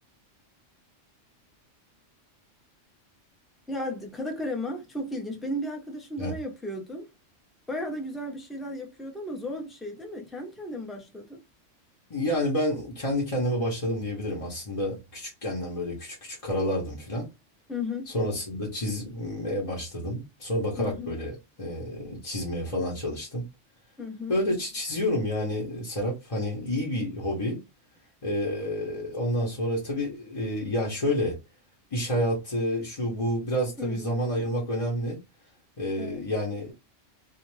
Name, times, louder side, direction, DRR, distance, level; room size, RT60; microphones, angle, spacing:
voice 1, 3.7-7.1 7.7-11.4 17.7-18.1 20.8-21.2 24.0-24.4 33.8-34.2 36.0-36.2, left 1 dB, ahead, 0.3 m, -34 dB
voice 2, 12.1-17.3 18.1-21.3 21.6-23.4 24.3-27.6 28.2-31.4 31.9-35.2 35.8-36.7, equal, 30° left, 0.9 m, -29 dB
2.5 x 2.4 x 3.0 m
omnidirectional pair, 1.3 m